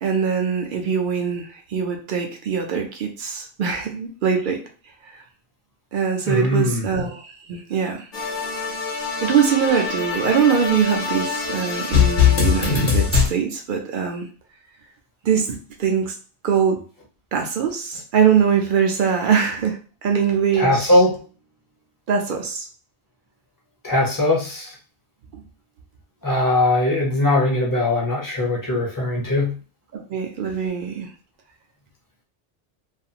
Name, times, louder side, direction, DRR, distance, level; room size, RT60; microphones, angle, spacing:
voice 1, 0.0-4.6 5.1-5.2 5.9-8.1 9.2-14.3 15.2-16.1 16.4-16.8 17.3-20.9 22.1-22.7 25.3-25.4 29.9-31.1, right 7 dB, 60° right, 3 dB, 0.6 m, -22 dB
voice 2, 6.3-6.8 20.5-21.1 23.8-24.7 26.2-29.5, left 1 dB, 20° left, -3 dB, 0.6 m, -20 dB
sound 1, 8.1-13.3, left 7 dB, 50° left, 0.9 m, -22 dB
2.4 x 2.4 x 2.8 m, 0.38 s
omnidirectional pair, 1.2 m